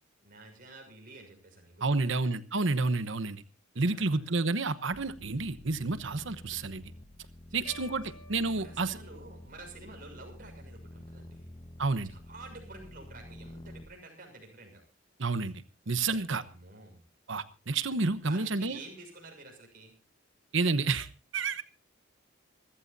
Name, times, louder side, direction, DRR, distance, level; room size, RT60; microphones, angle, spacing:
voice 1, 0.2-2.2 3.7-4.5 7.5-8.0 8.5-11.5 12.0-14.8 16.4-17.0 18.2-19.9, right 2 dB, 45° right, 2 dB, 6.6 m, -50 dB
voice 2, 1.8-3.4 3.8-6.8 7.5-9.0 11.8-12.1 15.2-16.4 17.3-18.8 20.5-21.1 21.3-21.6, right 3 dB, 65° right, 13 dB, 1.0 m, -30 dB
sound 1, 4.9-13.9, left 1 dB, 25° left, 1.2 m, -49 dB
sound 2, 7.6-9.9, left 3 dB, 50° left, 7.9 m, -53 dB
27.0 x 14.5 x 2.7 m, 0.32 s
head